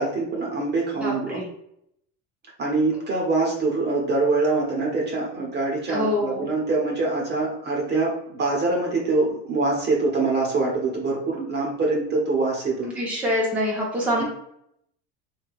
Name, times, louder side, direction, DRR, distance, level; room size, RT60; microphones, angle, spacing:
voice 1, 0.0-1.4 2.6-12.9 14.2-14.3, right 3 dB, 30° right, -2 dB, 1.1 m, -24 dB
voice 2, 1.0-1.5 5.9-6.5 12.8-14.2, equal, 5° right, -5 dB, 1.0 m, -25 dB
3.5 x 2.6 x 2.5 m, 0.73 s
supercardioid pair, 110°, 36 cm